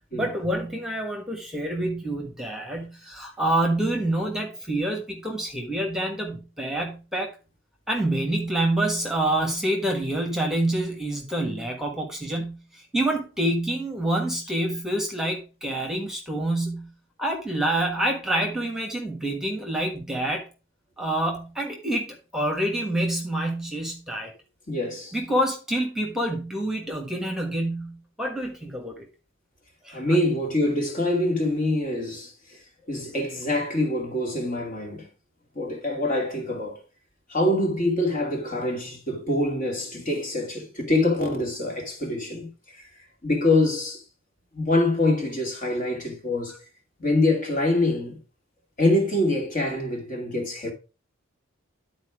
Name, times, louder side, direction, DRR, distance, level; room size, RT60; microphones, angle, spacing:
voice 1, 0.2-7.3 7.9-16.9 17.2-20.4 21.0-24.3 25.1-29.0 29.8-30.0, right 1 dB, 5° right, 1.5 m, -27 dB
voice 2, 24.7-25.2 29.9-32.6 32.9-35.1 35.5-36.8 37.3-42.8 43.2-44.0 44.5-46.6 47.0-48.2 48.8-50.7, left 2 dB, 40° left, 2.5 m, -25 dB
11.0 x 4.4 x 4.9 m
head